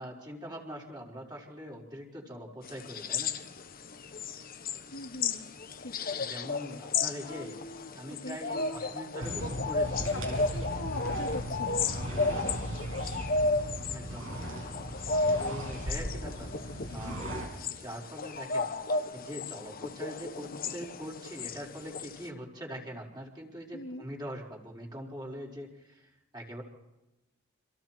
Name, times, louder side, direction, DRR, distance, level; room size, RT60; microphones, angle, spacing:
voice 1, 0.0-3.4 6.2-7.6 7.9-10.1 12.3-12.7 13.9-14.3 15.4-16.5 16.9-17.4 17.6-18.7 19.1-26.6, equal, 20° right, -2 dB, 5.5 m, -43 dB
sound 1, 2.6-22.3, left 3 dB, 45° left, 1.4 m, -34 dB
voice 2, 4.9-5.5 5.8-6.0 7.3-8.8 9.8-11.8 16.9-17.3 23.7-24.1, left 2 dB, 75° left, 2 dB, 2.8 m, -43 dB
sound 2, 9.2-17.5, right 1 dB, 85° right, 6.8 m, -37 dB
30.0 x 27.0 x 4.6 m, 0.98 s
head